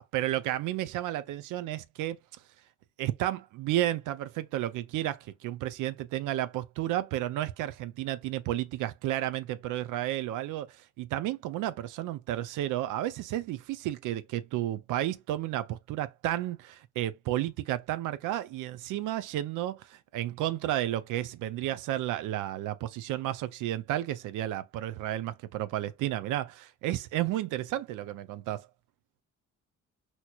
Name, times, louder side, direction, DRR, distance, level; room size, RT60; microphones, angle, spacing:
voice 1, 0.1-2.2 3.0-28.7, right 13 dB, 90° right, 0.5 m, -32 dB
4.4 x 2.9 x 2.3 m
cardioid pair, 90°, 30 cm